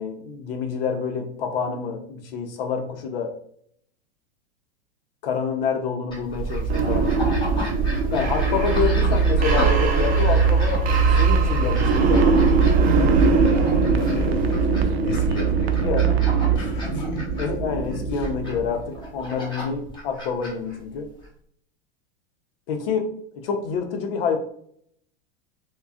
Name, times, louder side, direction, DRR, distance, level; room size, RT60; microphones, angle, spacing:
voice 1, 0.0-3.3 5.2-7.1 8.1-10.8 11.2-12.4 15.8-16.1 17.4-21.1 22.7-24.4, left 5 dB, 70° left, 4 dB, 0.8 m, -27 dB
sound 1, 6.1-21.3, left 1 dB, 15° left, 1.3 m, -36 dB
sound 2, 6.3-19.1, right 4 dB, 30° right, 0.5 m, -21 dB
sound 3, 9.6-16.5, right 15 dB, 90° right, 0.5 m, -28 dB
voice 2, 13.9-17.4 18.1-18.3, left 1 dB, 40° left, 2 dB, 1.4 m, -33 dB
4.7 x 2.3 x 2.4 m, 0.64 s
hypercardioid pair, 105°, 30 cm